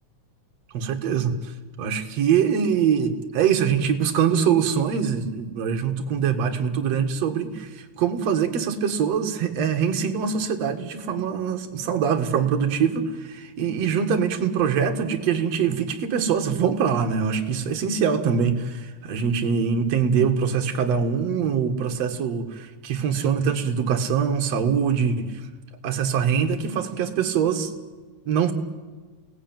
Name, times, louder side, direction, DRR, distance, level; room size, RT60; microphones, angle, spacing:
voice 1, 0.7-25.5 25.8-27.7 28.3-28.5, right 7 dB, 55° right, 5 dB, 2.6 m, -23 dB
28.5 x 18.5 x 9.1 m, 1.4 s
omnidirectional pair, 3.9 m